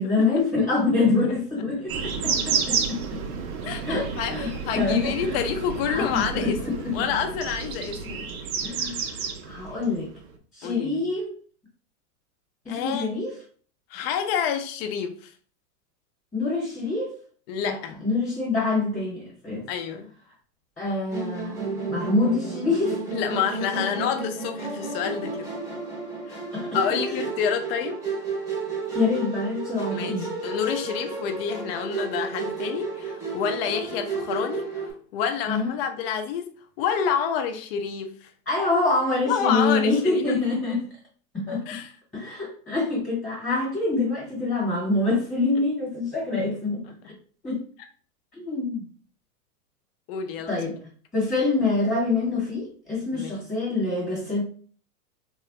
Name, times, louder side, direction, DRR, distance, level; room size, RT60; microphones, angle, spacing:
voice 1, 0.0-3.0 3.8-5.4 5.9-7.0 8.6-10.1 10.5-11.3 12.6-13.3 16.3-17.2 17.6-19.6 20.8-23.1 26.5-26.8 27.1-27.3 28.9-30.3 35.5-35.7 38.5-40.8 41.5-41.6 42.1-46.8 47.4-47.6 48.3-48.8 50.5-50.8 51.1-54.4, left 3 dB, 15° left, 1.1 m, -26 dB
sound 1, 1.9-10.4, right 6 dB, 65° right, 0.6 m, -31 dB
voice 2, 3.6-8.3 10.6-11.0 12.7-13.1 13.9-15.3 17.5-18.0 19.7-20.1 23.1-25.5 26.3-26.4 26.7-28.0 29.9-38.3 39.3-40.4 41.7-41.9 50.1-50.6 53.1-53.4, left 7 dB, 40° left, 0.5 m, -28 dB
Musical instrument, 21.1-34.9, right 4 dB, 5° right, 0.7 m, -32 dB
3.0 x 2.3 x 2.8 m
hypercardioid pair, 130°, 45 cm